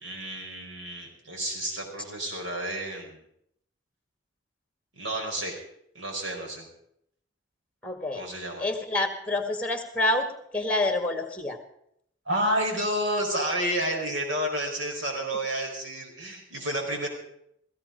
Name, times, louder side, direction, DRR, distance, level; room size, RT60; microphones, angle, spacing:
voice 1, 0.0-3.2 5.0-5.6 5.9-6.6 8.1-8.6 12.2-17.1, right 1 dB, 85° right, 0 dB, 4.8 m, -30 dB
voice 2, 7.8-8.2 8.6-10.3 10.5-11.6, left 2 dB, 5° left, 5 dB, 1.7 m, -27 dB
16.0 x 15.5 x 5.2 m, 0.73 s
head